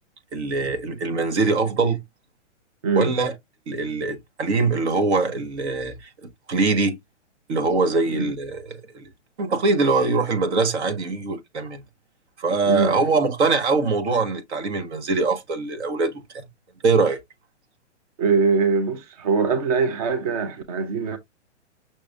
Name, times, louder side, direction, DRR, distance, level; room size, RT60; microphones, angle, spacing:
voice 1, 0.3-2.0 2.9-3.3 3.7-6.1 6.5-7.0 7.5-9.0 9.4-11.8 12.4-16.4 16.8-17.2, right 3 dB, 65° right, 1.6 m, -23 dB
voice 2, 18.2-21.2, right 5 dB, 30° right, 0.5 m, -22 dB
6.1 x 3.2 x 2.5 m
hypercardioid pair, 160°, 36 cm